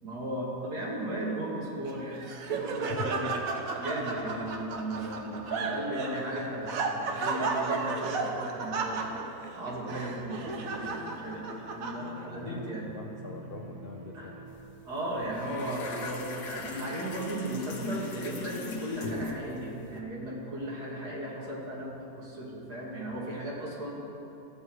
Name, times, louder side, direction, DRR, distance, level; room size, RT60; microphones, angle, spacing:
voice 1, 0.0-3.3 3.8-6.9 7.2-9.1 9.6-12.9 14.1-14.3 14.8-23.9, right 1 dB, 85° right, -5 dB, 2.8 m, -36 dB
Laughter, 1.8-12.4, right 4 dB, 60° right, 1.3 m, -34 dB
voice 2, 2.9-3.4 12.3-14.5, left 6 dB, 60° left, 2 dB, 0.6 m, -42 dB
sound 1, 7.2-14.6, right 3 dB, 40° right, 1.2 m, -52 dB
sound 2, 14.5-14.7 14.9-20.0, left 3 dB, 85° left, 1.6 m, -39 dB
15.0 x 8.4 x 4.7 m, 3.0 s
omnidirectional pair, 1.7 m